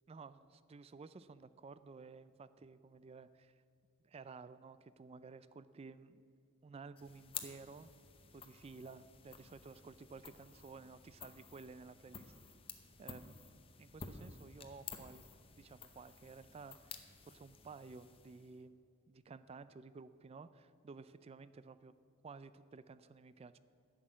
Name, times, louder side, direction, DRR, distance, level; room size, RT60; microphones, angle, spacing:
voice 1, 0.1-3.5 4.0-6.2 6.6-7.9 8.3-12.3 13.0-13.5 13.8-15.3 15.6-21.9 22.2-23.6, right 4 dB, 30° right, 15 dB, 0.3 m, -54 dB
sound 1, 7.0-18.6, left 6 dB, 25° left, 0.7 m, -53 dB
11.0 x 6.2 x 9.0 m, 2.3 s
head